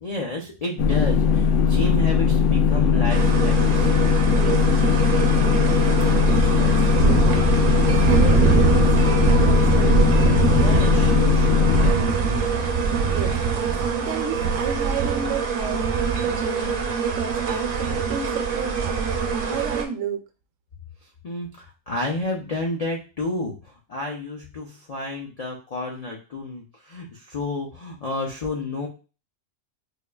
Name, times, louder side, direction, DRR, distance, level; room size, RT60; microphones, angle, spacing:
voice 1, 0.0-3.9 10.5-12.6 21.2-28.9, left 2 dB, 65° left, -1 dB, 0.4 m, -31 dB
sound 1, 0.8-11.9, left 6 dB, 90° left, 1.0 m, -19 dB
sound 2, 3.1-19.8, right 6 dB, 55° right, 0.6 m, -23 dB
voice 2, 4.3-10.1 13.1-20.3, right 6 dB, 75° right, 6 dB, 1.0 m, -32 dB
4.4 x 2.4 x 2.2 m, 0.33 s
omnidirectional pair, 1.4 m